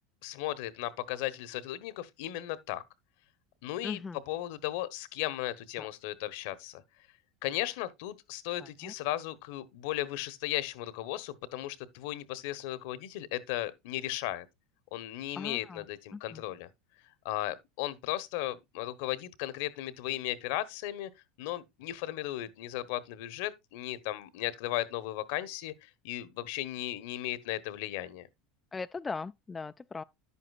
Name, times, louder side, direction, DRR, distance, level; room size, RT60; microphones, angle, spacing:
voice 1, 0.2-2.8 3.6-4.0 4.3-6.8 7.4-14.5 14.9-16.7 17.2-21.1 21.4-28.3, left 15 dB, 65° left, 1.0 m, -36 dB
voice 2, 3.8-4.2 5.8-5.9 8.6-8.9 15.4-15.9 16.1-16.4 28.7-30.0, left 4 dB, 20° left, 0.4 m, -39 dB
10.5 x 8.3 x 2.4 m
hypercardioid pair, 80°, 0 cm